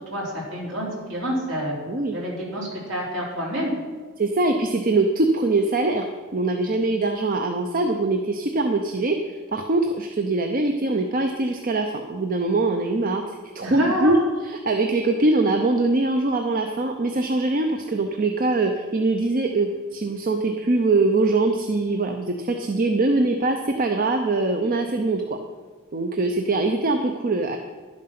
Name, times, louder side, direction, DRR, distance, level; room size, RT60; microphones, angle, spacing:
voice 1, 0.0-1.7 2.1-3.7 13.6-14.2, equal, 60° right, -4 dB, 3.7 m, -28 dB
voice 2, 4.2-6.0 6.3-13.2 13.5-14.2 14.4-25.4 25.9-27.6, right 2 dB, 40° right, 5 dB, 0.6 m, -22 dB
11.5 x 7.5 x 5.9 m, 1.4 s
head